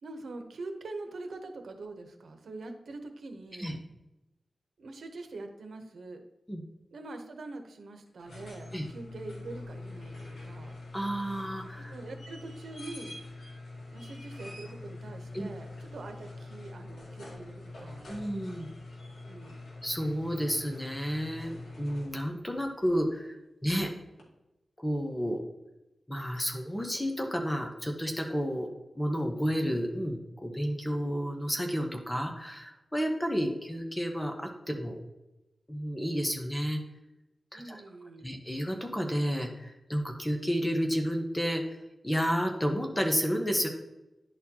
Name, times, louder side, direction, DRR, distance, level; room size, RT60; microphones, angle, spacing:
voice 1, 0.0-3.8 4.8-6.2 6.9-10.7 11.9-13.2 13.9-18.1 19.2-19.6 37.5-38.4, right 2 dB, 90° right, 5 dB, 0.9 m, -44 dB
sound 1, 8.1-22.5 24.2-24.3, left 2 dB, 80° left, 2.1 m, -45 dB
voice 2, 10.9-11.9 15.3-15.5 18.1-18.7 19.8-23.4 23.6-23.9 24.8-25.4 26.1-28.7 28.9-35.0 35.7-36.8 37.5-37.8 38.2-43.7, equal, 10° left, 3 dB, 0.9 m, -31 dB
11.0 x 4.2 x 2.8 m, 0.96 s
wide cardioid pair, 95°, 0 cm